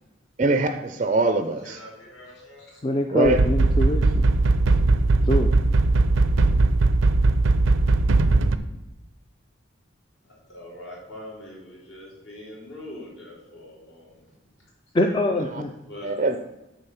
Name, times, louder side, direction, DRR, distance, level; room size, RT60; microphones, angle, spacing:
voice 1, 0.4-1.8 3.1-3.4 16.0-16.4, right 2 dB, 35° right, 8 dB, 0.4 m, -22 dB
voice 2, 1.6-2.8 10.2-14.3 15.9-16.4, left 1 dB, 65° left, -3 dB, 3.3 m, -43 dB
voice 3, 2.8-4.1 5.2-5.5 14.9-15.7, left 1 dB, 25° left, 5 dB, 0.4 m, -23 dB
sound 1, 3.2-8.6, right 2 dB, 85° right, 0.5 m, -19 dB
8.9 x 4.0 x 7.0 m, 0.99 s
head